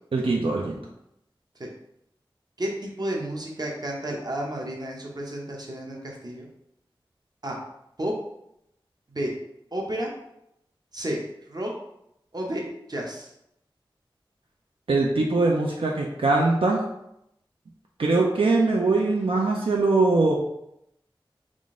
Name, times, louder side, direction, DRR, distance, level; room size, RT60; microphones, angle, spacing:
voice 1, 0.1-0.8 14.9-16.8 18.0-20.3, right 3 dB, 80° right, -1 dB, 0.5 m, -22 dB
voice 2, 2.6-6.5 7.4-7.6 8.0-8.1 9.1-9.3 9.7-10.1 10.9-11.2 11.5-11.7 12.3-12.6 12.9-13.3, right 1 dB, 50° right, -1 dB, 0.8 m, -31 dB
3.7 x 2.5 x 3.6 m, 0.80 s
wide cardioid pair, 60°, 9 cm